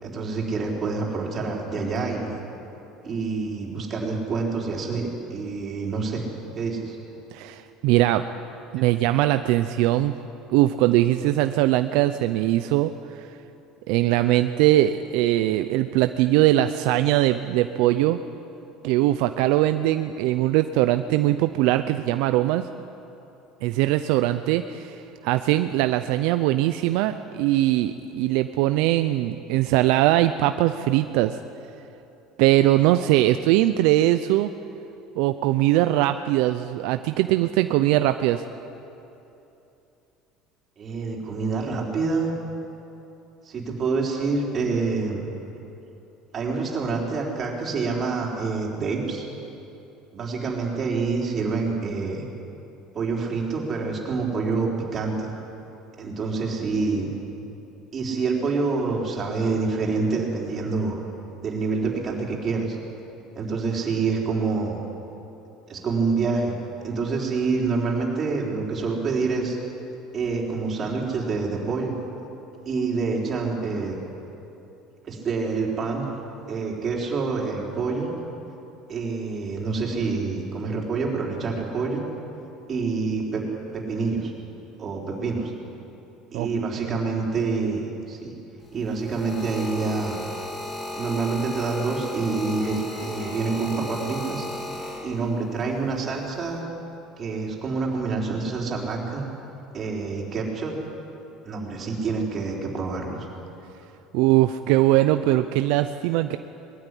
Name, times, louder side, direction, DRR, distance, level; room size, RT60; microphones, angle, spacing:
voice 1, 0.0-2.4 3.0-6.2 6.6-7.0 8.8-8.9 40.8-42.3 43.4-45.3 46.3-49.2 50.1-52.3 52.9-55.3 56.0-57.1 57.9-61.0 61.4-62.8 63.4-64.8 65.7-66.5 66.8-69.6 70.1-71.9 72.7-74.0 75.0-76.1 76.5-78.1 78.9-82.0 82.7-83.4 83.7-84.3 84.8-85.5 86.3-88.3 88.7-90.2 90.9-94.5 95.0-96.6 97.2-99.3 99.7-100.8 101.4-103.3, right 4 dB, 35° right, -1 dB, 4.3 m, -27 dB
voice 2, 7.3-8.3 8.7-10.1 10.5-13.3 13.9-18.2 18.8-22.7 23.6-31.4 32.4-34.5 35.2-38.4 86.3-86.5 86.8-86.9 104.1-106.4, right 15 dB, 75° right, 9 dB, 0.6 m, -21 dB
sound 1, 88.6-95.5 96.3-96.6, left 2 dB, 30° left, 6.3 m, -35 dB
21.0 x 13.0 x 10.0 m, 2.9 s
cardioid pair, 125°, 0 cm